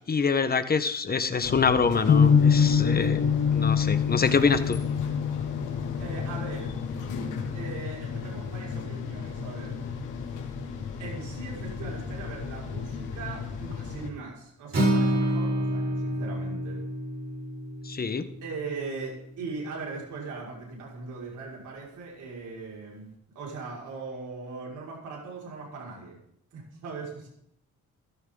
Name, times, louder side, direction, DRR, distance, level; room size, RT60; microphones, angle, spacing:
voice 1, 0.1-4.8 17.8-18.2, left 5 dB, 30° left, 11 dB, 1.4 m, -25 dB
sound 1, 1.4-14.1, left 5 dB, 85° left, 2.6 m, -35 dB
sound 2, 2.1-8.1, left 6 dB, 50° left, 1.4 m, -25 dB
voice 2, 6.0-6.7 7.5-9.8 10.3-10.4 11.0-16.8 18.4-26.2 26.5-27.3, right 4 dB, 75° right, -3 dB, 5.8 m, -39 dB
Acoustic guitar, 14.7-18.9, right 1 dB, 45° right, 5.5 m, -28 dB
15.5 x 13.5 x 4.0 m, 0.72 s
cardioid pair, 90°, 30 cm